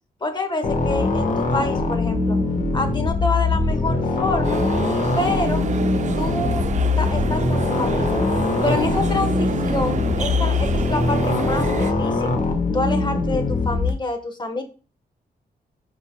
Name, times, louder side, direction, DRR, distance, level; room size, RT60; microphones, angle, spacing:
voice 1, 0.2-2.4 2.7-4.6 5.2-5.6 6.2-6.7 7.0-8.2 8.6-12.3 12.7-14.6, left 2 dB, 25° left, 6 dB, 1.2 m, -27 dB
sound 1, 0.6-13.9, left 3 dB, 50° left, 1.3 m, -22 dB
sound 2, 4.4-11.9, right 6 dB, 45° right, 0.5 m, -29 dB
10.0 x 5.4 x 2.2 m, 0.35 s
wide cardioid pair, 140°, 17 cm